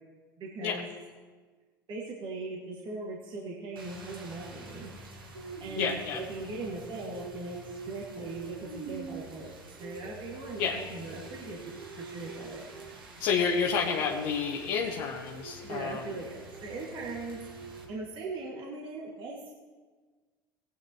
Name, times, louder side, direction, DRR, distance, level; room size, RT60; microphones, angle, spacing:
voice 1, 0.4-0.9 1.9-4.9 5.6-12.7 12.9-13.1 15.6-17.4 17.9-19.5, right 3 dB, 45° right, -4 dB, 2.2 m, -40 dB
Rain, 3.8-17.9, right 3 dB, 85° right, 1.7 m, -45 dB
voice 2, 5.8-6.2 10.6-10.8 13.2-16.0, left 6 dB, 65° left, -1 dB, 1.1 m, -29 dB
18.5 x 9.5 x 3.1 m, 1.4 s
hypercardioid pair, 65°, 11 cm